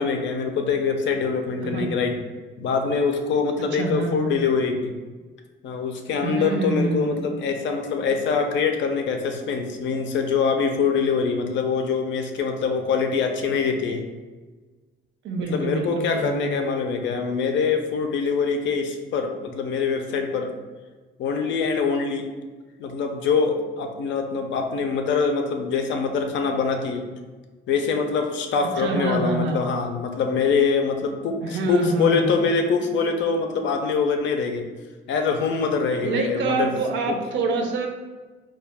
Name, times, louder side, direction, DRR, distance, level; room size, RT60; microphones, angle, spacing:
voice 1, 0.0-2.1 2.6-4.9 5.6-14.0 15.5-20.5 21.2-22.3 22.8-27.0 27.7-34.7 35.1-36.7 37.1-37.2, left 5 dB, 65° left, 5 dB, 0.4 m, -24 dB
voice 2, 1.6-1.9 3.6-4.3 6.2-7.2 15.2-16.6 28.8-29.6 31.4-32.5 36.0-37.9, right 3 dB, 70° right, 4 dB, 0.4 m, -26 dB
2.3 x 2.2 x 3.3 m, 1.3 s
cardioid pair, 90°, 20 cm